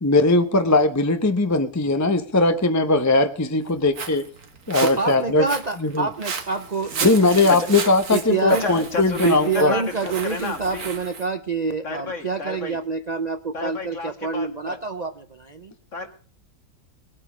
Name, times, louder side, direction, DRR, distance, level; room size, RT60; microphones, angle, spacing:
voice 1, 0.0-4.2 4.7-5.4 5.8-6.1 7.0-9.7, left 2 dB, 15° left, 8 dB, 0.8 m, -19 dB
Walk footsteps, 3.6-11.3, right 5 dB, 75° right, 2.0 m, -34 dB
voice 2, 4.8-7.1 8.1-8.7 9.2-15.7, right 4 dB, 40° right, 8 dB, 0.6 m, -27 dB
voice 3, 8.5-10.9 11.8-12.8 13.5-14.8 15.9-16.1, left 3 dB, 55° left, 5 dB, 2.4 m, -31 dB
20.5 x 8.9 x 5.0 m, 0.42 s
omnidirectional pair, 1.6 m